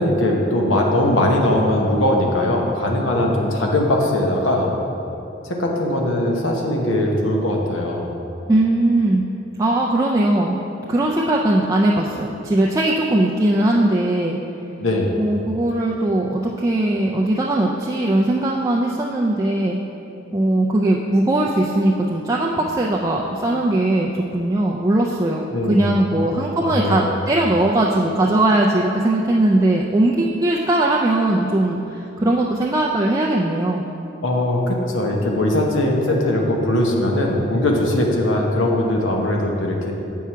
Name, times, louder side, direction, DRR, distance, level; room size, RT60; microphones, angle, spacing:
voice 1, 0.0-4.7 5.4-8.1 14.8-15.2 25.5-25.9 26.2-27.2 34.2-39.9, left 1 dB, 90° left, 0 dB, 0.9 m, -20 dB
voice 2, 8.5-9.2 9.6-10.6 10.9-14.4 15.2-19.8 20.3-33.8, right 1 dB, 15° right, -2 dB, 0.3 m, -19 dB
7.2 x 4.7 x 5.6 m, 3.0 s
head